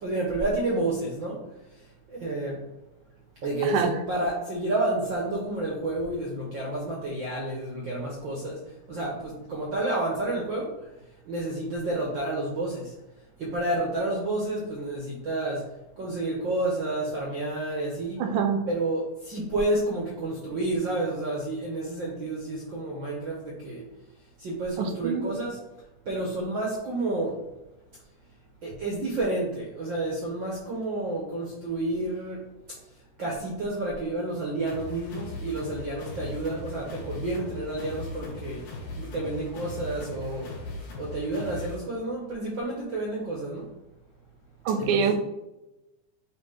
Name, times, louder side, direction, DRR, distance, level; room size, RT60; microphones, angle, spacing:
voice 1, 0.0-1.4 2.1-2.6 3.4-8.6 8.9-10.7 11.3-12.9 13.4-15.6 16.0-18.2 18.7-23.8 24.4-25.6 26.1-27.4 28.6-32.4 33.2-38.6 38.9-40.5 41.0-43.6 44.8-45.1, right 2 dB, 65° right, -3 dB, 1.2 m, -30 dB
voice 2, 3.6-4.0 18.2-18.6 24.8-25.3 44.7-45.1, right 7 dB, 85° right, 6 dB, 2.2 m, -25 dB
sound 1, 34.7-41.8, left 2 dB, 75° left, 3.6 m, -39 dB
9.1 x 3.2 x 3.5 m, 0.98 s
omnidirectional pair, 3.7 m